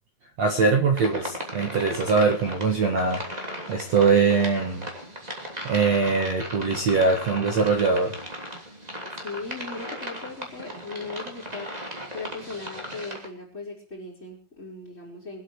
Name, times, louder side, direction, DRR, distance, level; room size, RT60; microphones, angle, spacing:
voice 1, 0.4-4.8 5.6-8.2, right 4 dB, 70° right, 3 dB, 1.5 m, -22 dB
sound 1, 0.9-13.3, equal, 15° right, 1.5 m, -37 dB
voice 2, 9.2-11.7 12.1-15.4, left 3 dB, 15° left, -6 dB, 4.2 m, -38 dB
24.5 x 8.6 x 4.8 m, 0.37 s
omnidirectional pair, 5.7 m